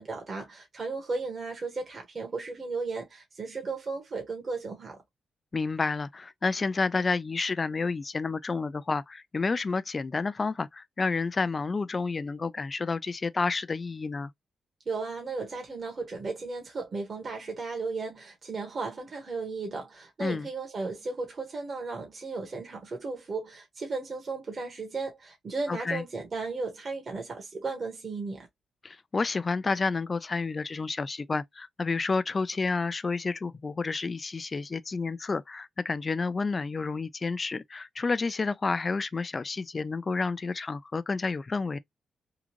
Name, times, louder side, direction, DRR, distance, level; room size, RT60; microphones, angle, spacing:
voice 1, 0.0-5.0 14.8-28.5, right 3 dB, 45° right, 1.5 m, -35 dB
voice 2, 5.5-14.3 20.2-20.5 25.7-26.0 28.8-41.8, left 4 dB, 35° left, 0.5 m, -30 dB
3.7 x 2.4 x 3.0 m
cardioid pair, 75°, 0 cm